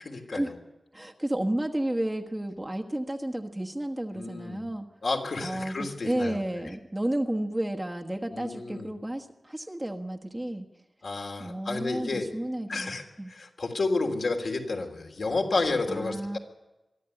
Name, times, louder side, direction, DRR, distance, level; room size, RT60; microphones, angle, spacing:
voice 1, 0.0-0.5 4.1-4.7 5.0-6.4 8.3-8.9 11.0-12.3 12.7-13.0 13.3-16.4, left 3 dB, 70° left, 2 dB, 3.2 m, -31 dB
voice 2, 0.9-4.9 5.4-10.7 11.4-13.3 15.9-16.4, right 1 dB, 15° right, 2 dB, 1.3 m, -32 dB
23.0 x 12.5 x 9.9 m, 1.0 s
wide cardioid pair, 90°, 0 cm